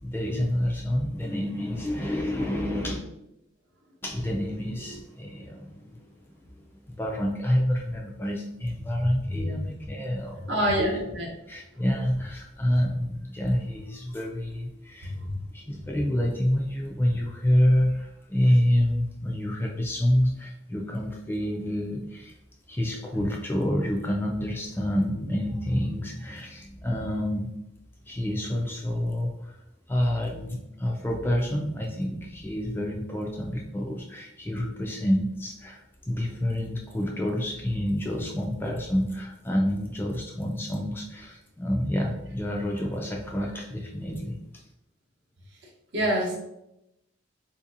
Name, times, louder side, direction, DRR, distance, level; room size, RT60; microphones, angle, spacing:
voice 1, 0.0-3.0 4.0-11.2 11.5-15.1 15.5-22.4 22.7-27.5 28.1-29.6 29.9-44.6, equal, 10° left, -1 dB, 0.3 m, -28 dB
voice 2, 10.5-11.3 15.1-15.4 45.9-46.4, equal, 60° right, -1 dB, 0.8 m, -26 dB
4.0 x 2.7 x 2.5 m, 0.86 s
head